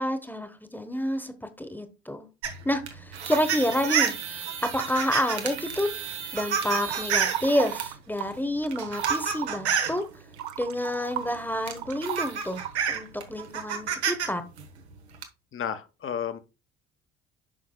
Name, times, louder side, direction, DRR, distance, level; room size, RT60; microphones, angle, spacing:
voice 1, 0.0-2.3 2.6-4.5 4.7-5.9 6.3-10.0 10.6-12.6 12.9-14.4, left 1 dB, 5° left, 1.1 m, -29 dB
sound 1, 2.4-7.9 8.6-10.0 11.2-11.3 11.7-14.3 14.6-15.2, right 7 dB, 80° right, 1.1 m, -29 dB
sound 2, 6.9-8.4 8.6-13.1, right 12 dB, 60° right, 0.9 m, -36 dB
voice 2, 15.5-16.4, left 8 dB, 40° left, 1.0 m, -32 dB
10.0 x 5.9 x 2.3 m
figure-of-eight pair, 50°, 32 cm